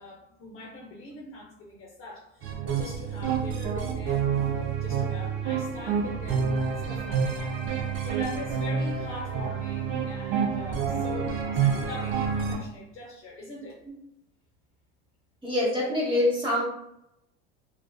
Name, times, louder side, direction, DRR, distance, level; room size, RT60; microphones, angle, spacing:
voice 1, 0.0-7.6 8.0-13.8, left 2 dB, 40° left, -2 dB, 0.7 m, -42 dB
sound 1, 2.4-12.6, right 6 dB, 35° right, 0.5 m, -28 dB
voice 2, 15.4-16.6, left 1 dB, 15° right, -5 dB, 1.0 m, -25 dB
2.4 x 2.3 x 2.2 m, 0.81 s
supercardioid pair, 100°, 34 cm